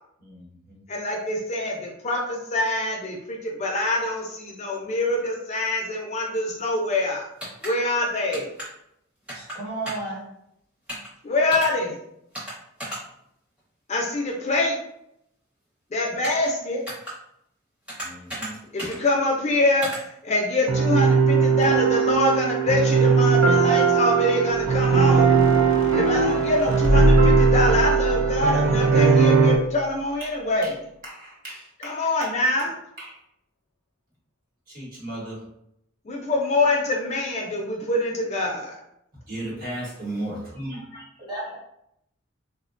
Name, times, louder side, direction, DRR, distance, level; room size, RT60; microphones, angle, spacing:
voice 1, 0.2-0.8 18.0-19.0 30.2-30.3 30.6-30.7 31.0-32.1 33.0-33.2 34.7-35.4 39.3-41.1 41.3-41.4, right 1 dB, 45° right, -5 dB, 1.0 m, -36 dB
voice 2, 0.9-7.2 7.6-8.5 11.2-12.0 13.9-14.8 15.9-16.8 18.7-25.3 25.9-30.8 31.8-32.7 36.1-38.8, left 2 dB, 35° left, -1 dB, 0.4 m, -25 dB
sound 1, 7.4-7.7 8.3-8.7 9.3-9.6 9.8-10.1 10.9-11.1 11.5-11.7 12.3-12.5 12.8-13.0 16.2-16.5 16.9-17.1 17.9-18.5 18.8-19.0 19.8-20.0, equal, 5° right, 0.7 m, -33 dB
voice 3, 9.3-10.3 41.3-41.6, right 2 dB, 20° right, -6 dB, 1.1 m, -32 dB
sound 2, 20.7-29.6, right 5 dB, 80° right, 0.4 m, -19 dB
sound 3, 24.5-29.8, left 1 dB, 85° left, 0.6 m, -25 dB
3.4 x 2.1 x 2.5 m, 0.77 s
head